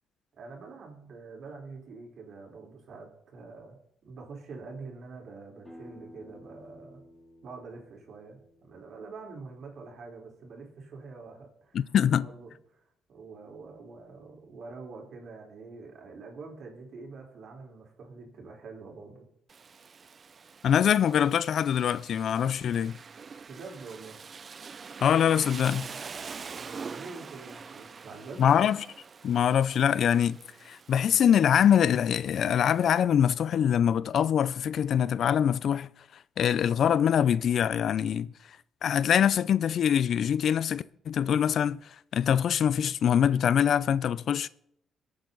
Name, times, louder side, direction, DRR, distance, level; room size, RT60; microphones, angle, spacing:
voice 1, 0.3-3.8 4.0-7.0 7.4-12.8 13.1-19.2 23.5-24.2 26.4-28.7, right 4 dB, 60° right, 4.3 m, -45 dB
sound 1, 5.6-11.2, left 1 dB, 10° left, 6.1 m, -54 dB
voice 2, 11.7-12.3 20.6-23.0 25.0-25.9 28.4-28.8 29.2-30.4 30.7-35.9 36.4-38.3 38.8-41.8 42.1-44.5, left 9 dB, 65° left, 0.5 m, -24 dB
Rain, 19.5-33.0, right 5 dB, 40° right, 0.5 m, -45 dB
24.0 x 8.8 x 4.0 m
cardioid pair, 90°, 0 cm